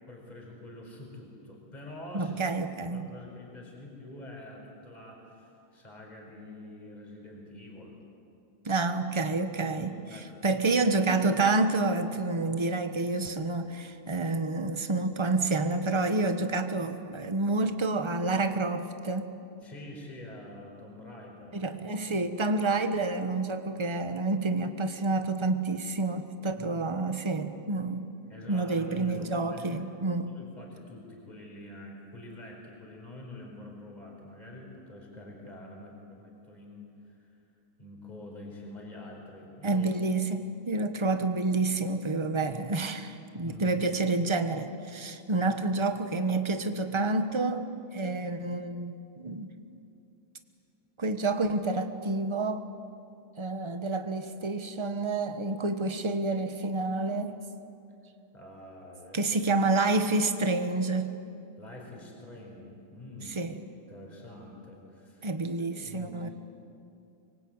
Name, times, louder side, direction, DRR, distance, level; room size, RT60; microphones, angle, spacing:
voice 1, 0.1-2.6 2.9-8.0 9.7-10.9 19.6-21.8 26.6-26.8 28.3-29.8 30.2-37.3 37.8-39.9 43.4-43.9 45.8-45.9 58.3-59.4 61.6-63.4 63.9-65.3 65.7-66.3, left 1 dB, 20° left, -1 dB, 4.8 m, -46 dB
voice 2, 2.1-3.1 8.6-19.3 21.5-28.1 28.5-30.3 39.6-49.5 51.0-52.7 53.4-57.4 59.1-61.1 63.3-63.5 65.2-66.3, right 3 dB, 20° right, 8 dB, 0.8 m, -29 dB
25.0 x 23.5 x 8.8 m, 2.7 s
omnidirectional pair, 2.3 m